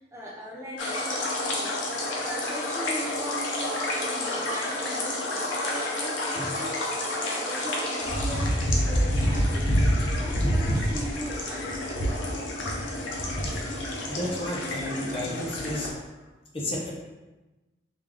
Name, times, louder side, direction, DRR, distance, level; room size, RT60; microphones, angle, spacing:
voice 1, 0.1-1.8 2.2-12.1, equal, 15° right, -4 dB, 0.4 m, -39 dB
sound 1, 0.8-15.9, left 1 dB, 75° left, 0.6 m, -28 dB
voice 2, 14.1-15.9 16.5-16.9, left 1 dB, 30° left, -3 dB, 0.6 m, -32 dB
3.6 x 2.4 x 3.3 m, 1.1 s
head